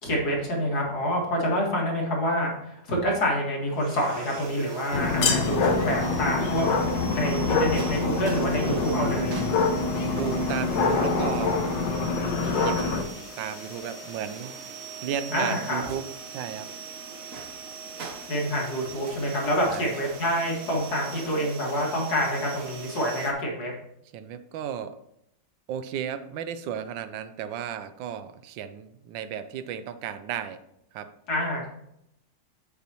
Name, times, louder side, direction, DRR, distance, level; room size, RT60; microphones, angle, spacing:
voice 1, 0.0-6.7 7.1-9.4 15.3-15.8 18.3-23.7 31.3-31.7, equal, 55° left, -2 dB, 2.4 m, -27 dB
sound 1, 3.7-23.3, right 3 dB, 55° right, 1.3 m, -41 dB
sound 2, 4.9-13.0, left 3 dB, 75° left, 1.6 m, -25 dB
voice 2, 10.1-11.7 12.6-13.0 13.4-14.5 15.0-16.0 16.3-16.7 19.7-19.9 24.1-25.0 25.7-30.6 30.9-31.1, right 8 dB, 90° right, 12 dB, 1.4 m, -34 dB
7.5 x 7.3 x 3.0 m, 0.77 s
omnidirectional pair, 2.0 m